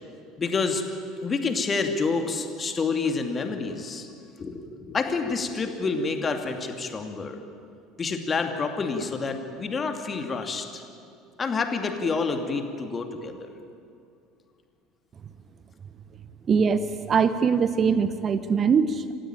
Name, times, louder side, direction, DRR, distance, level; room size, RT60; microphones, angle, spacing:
voice 1, 0.4-0.8 1.2-4.1 4.4-7.4 8.0-10.8 11.4-13.5, left 4 dB, 30° left, 5 dB, 2.6 m, -28 dB
voice 2, 16.5-19.1, right 6 dB, 35° right, 13 dB, 1.0 m, -22 dB
28.0 x 15.5 x 9.2 m, 2.4 s
figure-of-eight pair, 65°, 0 cm